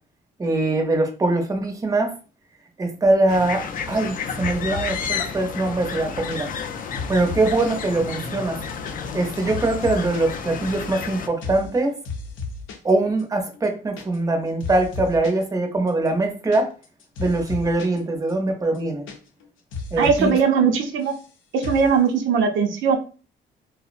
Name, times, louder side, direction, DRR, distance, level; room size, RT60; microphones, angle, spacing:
voice 1, 0.4-2.1 2.8-6.5 7.1-8.6 9.1-11.9 12.8-16.7 17.2-19.1 19.9-20.3, right 2 dB, 15° right, 4 dB, 0.5 m, -22 dB
sound 1, 3.3-11.3, left 6 dB, 45° left, 0.4 m, -31 dB
sound 2, 3.7-4.1 4.4-5.2 5.7-7.8 8.1-8.2 8.4-8.9 9.2-10.2 10.5-11.1 11.4-11.7 12.0-12.9 13.2-13.3 13.5-14.3 14.6-15.4 15.9-18.0 18.3-18.4 18.6-19.4 19.7-20.4 20.7-21.3 21.6-21.9, left 4 dB, 85° left, 0.6 m, -34 dB
voice 2, 20.0-21.1 21.5-23.0, right 6 dB, 80° right, 3 dB, 0.6 m, -19 dB
2.6 x 2.0 x 2.4 m, 0.36 s
cardioid pair, 90°, 20 cm